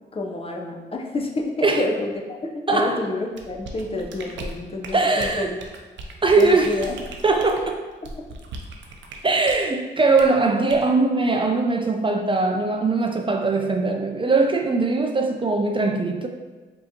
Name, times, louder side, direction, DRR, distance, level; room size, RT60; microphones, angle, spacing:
voice 1, 0.1-5.6 6.3-7.0, left 2 dB, 30° left, 1 dB, 0.6 m, -28 dB
voice 2, 2.7-3.0 4.9-5.5 6.2-6.8 7.2-7.8 9.2-16.3, right 3 dB, 25° right, 3 dB, 0.4 m, -20 dB
sound 1, 3.3-9.7 10.2-10.4 10.7-10.9, right 3 dB, 85° right, 0.5 m, -38 dB
4.8 x 2.8 x 2.8 m, 1.3 s
cardioid pair, 60°, 19 cm